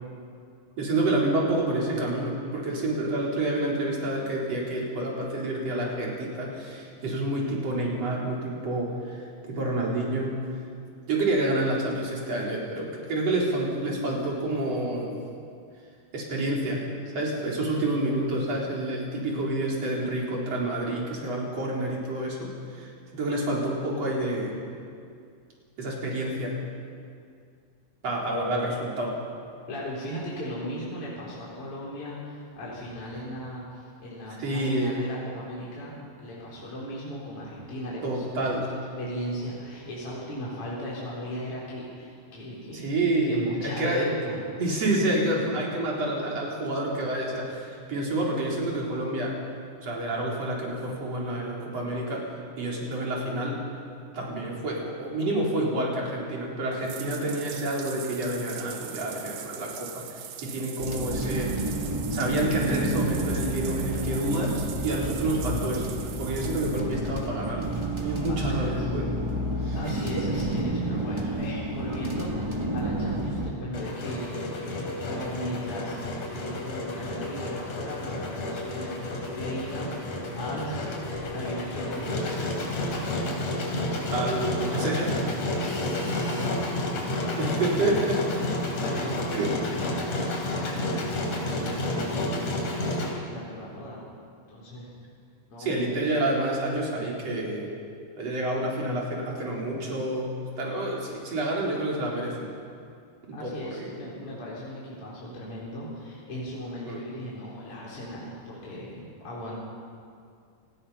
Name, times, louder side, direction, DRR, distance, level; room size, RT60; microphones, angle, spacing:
voice 1, 0.8-10.7 11.1-15.2 16.1-24.6 25.8-26.6 28.0-29.1 34.4-35.0 38.0-38.7 42.7-44.1 44.6-49.3 49.8-52.2 52.6-53.6 54.1-61.5 62.1-67.7 68.0-69.1 69.6-69.8 84.1-85.1 87.4-88.2 89.3-89.5 92.9-93.0 95.6-97.7 98.2-102.5 103.3-103.9 106.9-107.0, right 1 dB, 50° right, -3 dB, 5.1 m, -28 dB
voice 2, 29.7-38.5 39.0-42.9 43.3-44.4 60.4-60.6 68.3-68.9 69.7-82.7 84.6-85.1 85.4-87.4 87.8-88.0 88.4-94.1 94.5-94.9 95.5-95.8 103.3-109.6, equal, 40° left, -6 dB, 5.2 m, -37 dB
Bathtub (filling or washing), 56.7-66.8, right 10 dB, 85° right, 2.9 m, -41 dB
sound 1, 60.8-73.5, right 1 dB, 15° right, 1.1 m, -30 dB
Engine, 73.7-93.1, left 1 dB, 60° left, 4.5 m, -31 dB
28.0 x 19.5 x 5.8 m, 2.3 s
omnidirectional pair, 3.8 m